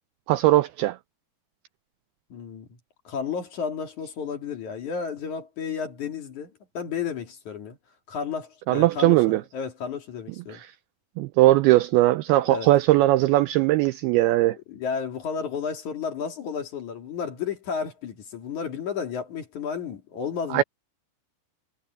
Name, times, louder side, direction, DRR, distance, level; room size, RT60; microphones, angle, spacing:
voice 1, 0.3-1.0 8.7-9.4 10.5-10.7 11.2-14.6 20.5-20.6, right 16 dB, 85° right, 2.2 m, -19 dB
voice 2, 2.3-2.7 3.0-7.8 8.1-10.6 12.5-12.7 14.7-20.6, left 6 dB, 50° left, 3.2 m, -32 dB
omnidirectional pair, 5.1 m